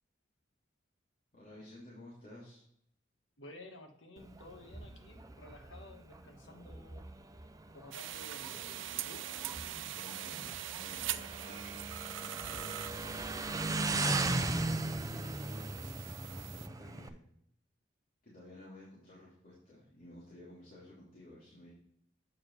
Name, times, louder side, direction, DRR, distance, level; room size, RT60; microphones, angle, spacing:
voice 1, 1.3-2.6 9.9-11.9 12.2-13.3 13.9-17.2 18.2-21.7, left 1 dB, 50° left, -8 dB, 2.9 m, -54 dB
voice 2, 3.4-7.0 7.7-9.2, left 1 dB, 80° left, 4 dB, 1.4 m, -53 dB
Motorcycle, 4.2-17.1, right 2 dB, 20° right, 0.5 m, -38 dB
sound 1, 7.9-16.7, right 12 dB, 90° right, 0.5 m, -43 dB
8.6 x 6.5 x 3.2 m, 0.70 s
head